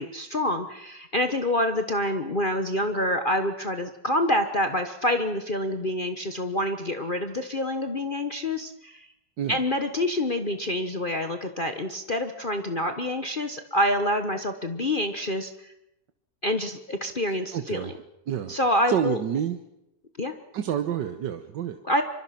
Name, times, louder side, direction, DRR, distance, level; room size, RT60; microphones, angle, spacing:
voice 1, 0.0-9.1 9.5-15.7 16.4-17.9 18.5-19.2 20.2-20.3 21.8-22.0, left 1 dB, 30° left, 6 dB, 1.3 m, -27 dB
voice 2, 17.5-17.9 18.3-18.6 18.9-19.6 20.5-21.8, right 9 dB, 80° right, 8 dB, 1.7 m, -28 dB
25.5 x 24.0 x 5.9 m, 0.84 s
omnidirectional pair, 1.9 m